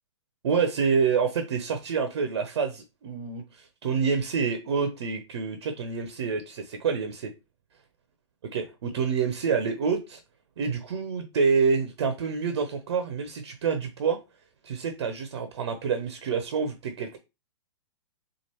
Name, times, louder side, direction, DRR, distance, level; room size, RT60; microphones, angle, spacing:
voice 1, 0.4-7.3 8.5-10.2 10.6-14.2 14.6-17.2, right 5 dB, 60° right, 0.7 m, -27 dB
4.4 x 2.5 x 2.9 m
hypercardioid pair, 120°, 15 cm